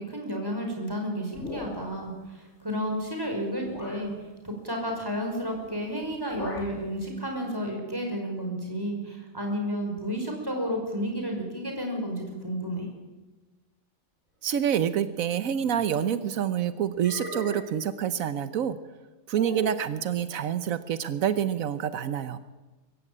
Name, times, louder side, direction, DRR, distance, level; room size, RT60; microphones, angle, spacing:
voice 1, 0.0-4.1 4.4-12.9, equal, 15° right, 1 dB, 5.5 m, -32 dB
sound 1, 1.3-2.1 3.0-3.1 3.7-4.1 5.5-5.8 6.0-6.8, left 2 dB, 60° left, 3.9 m, -40 dB
voice 2, 14.4-18.8 19.3-22.4, right 9 dB, 85° right, 12 dB, 1.3 m, -27 dB
sound 2, 15.5-16.3 17.0-17.8 19.3-19.9, equal, 80° left, 6.6 m, -38 dB
24.0 x 15.0 x 8.8 m, 1.2 s
omnidirectional pair, 1.4 m